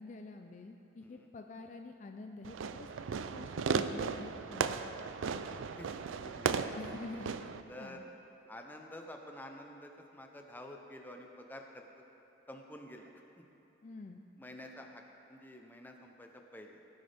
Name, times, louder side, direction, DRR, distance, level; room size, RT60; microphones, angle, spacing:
voice 1, 0.0-4.8 6.7-7.5 7.8-8.0 13.8-14.2, left 3 dB, 40° left, 5 dB, 0.4 m, -47 dB
voice 2, 1.0-1.3 5.4-7.3 7.7-8.1 8.5-12.0 12.5-13.5 14.4-15.0 15.3-16.8, left 1 dB, 10° left, 2 dB, 0.7 m, -50 dB
Fireworks, 2.4-7.6, right 5 dB, 90° right, 0.4 m, -36 dB
16.5 x 9.3 x 3.5 m, 2.9 s
head